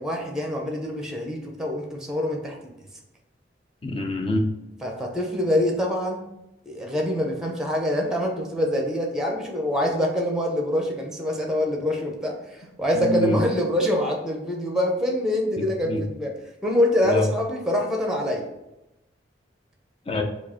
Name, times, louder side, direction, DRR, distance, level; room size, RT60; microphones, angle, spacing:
voice 1, 0.0-2.7 4.8-6.2 6.7-16.3 16.6-18.4, left 1 dB, 5° right, 1 dB, 0.7 m, -25 dB
voice 2, 3.8-4.5 12.9-13.4 15.6-16.0 17.0-17.3 20.1-20.2, left 1 dB, 30° left, 2 dB, 0.6 m, -25 dB
4.7 x 2.5 x 4.3 m, 0.92 s
head